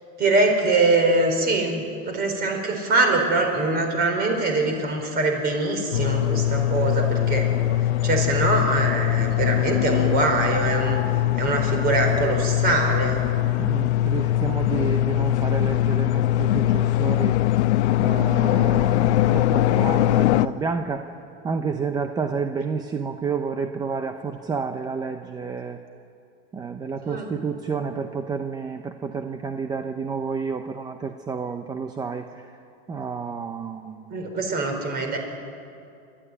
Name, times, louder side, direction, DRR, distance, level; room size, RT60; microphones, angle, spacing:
voice 1, 0.2-7.5 8.0-11.0 11.3-13.2 27.1-27.3 34.1-35.2, right 3 dB, 30° right, 4 dB, 4.4 m, -23 dB
sound 1, 5.9-20.5, left 14 dB, 80° left, 0.8 m, -22 dB
voice 2, 13.6-17.4 18.0-21.0 21.4-25.8 26.5-32.2 32.9-34.0, right 5 dB, 10° right, 6 dB, 0.6 m, -30 dB
29.5 x 13.5 x 9.7 m, 2.5 s
supercardioid pair, 160°, 33 cm